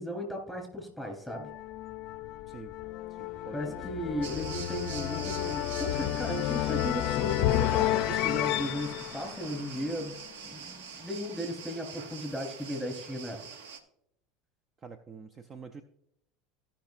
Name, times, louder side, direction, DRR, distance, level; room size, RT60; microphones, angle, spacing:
voice 1, 0.0-1.5 3.5-13.4, equal, ahead, 2 dB, 3.8 m, -36 dB
sound 1, 1.3-10.3, left 14 dB, 60° left, 0.5 m, -31 dB
voice 2, 3.1-4.0 14.8-15.8, right 5 dB, 35° right, 9 dB, 0.6 m, -47 dB
sound 2, 4.2-13.8, right 6 dB, 75° right, 0.9 m, -44 dB
16.0 x 5.8 x 2.5 m, 0.75 s
hypercardioid pair, 80°, 0 cm